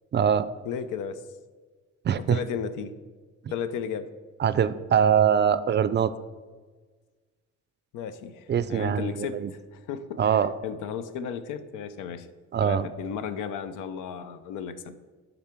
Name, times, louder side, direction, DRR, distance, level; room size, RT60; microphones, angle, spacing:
voice 1, 0.1-0.5 2.0-2.4 4.4-6.1 8.5-9.5 10.2-10.5 12.5-12.9, right 8 dB, 35° right, 14 dB, 0.4 m, -23 dB
voice 2, 0.6-1.2 2.2-2.9 3.5-4.1 7.9-10.3 10.6-12.3 12.6-15.0, left 7 dB, 90° left, 11 dB, 0.6 m, -34 dB
11.0 x 3.9 x 4.4 m, 1.4 s
cardioid pair, 90°, 30 cm